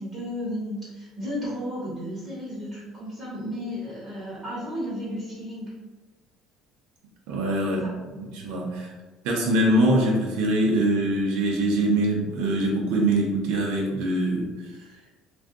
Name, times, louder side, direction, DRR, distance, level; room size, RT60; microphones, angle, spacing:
voice 1, 0.0-5.7 7.6-7.9, equal, 30° right, -9 dB, 1.2 m, -33 dB
voice 2, 7.3-7.8 8.2-8.9 9.2-14.8, right 1 dB, 85° right, -2 dB, 0.7 m, -23 dB
2.4 x 2.3 x 3.7 m, 1.2 s
cardioid pair, 145°, 0 cm